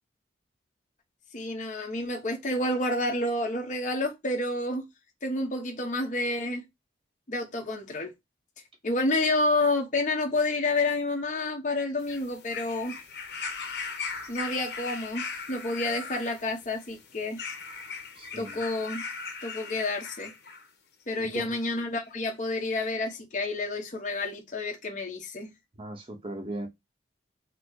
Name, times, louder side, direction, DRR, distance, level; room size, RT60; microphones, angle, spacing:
voice 1, 1.3-4.9 5.2-6.6 7.3-8.1 8.8-13.0 14.3-17.4 18.4-19.0 19.4-20.3 21.1-25.5, left 2 dB, 45° left, 1.0 m, -29 dB
sound 1, 12.0-20.7 21.6-21.7, left 5 dB, 75° left, 1.0 m, -39 dB
voice 2, 18.1-18.6 21.1-21.6 25.8-26.7, right 1 dB, 30° right, 0.8 m, -38 dB
4.2 x 2.1 x 4.6 m
head